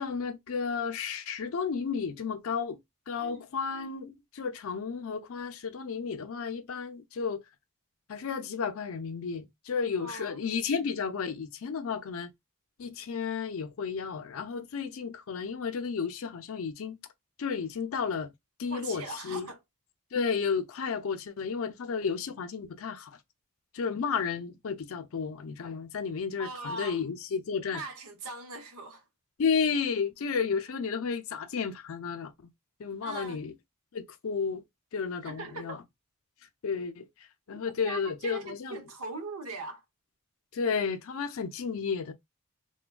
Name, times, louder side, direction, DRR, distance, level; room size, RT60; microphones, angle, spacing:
voice 1, 0.0-2.8 3.1-7.4 8.1-12.3 12.8-17.0 17.4-18.3 18.6-19.5 20.1-23.2 23.7-27.8 29.4-32.3 32.8-33.5 33.9-34.6 34.9-35.8 36.6-37.1 37.5-38.8 40.5-42.1, left 5 dB, 65° left, 0.4 m, -32 dB
voice 2, 10.0-10.4 18.7-19.6 26.4-27.0 27.6-29.0 33.0-33.4 35.2-35.8 37.8-39.8, right 3 dB, 75° right, 0.7 m, -40 dB
3.3 x 2.2 x 2.2 m
head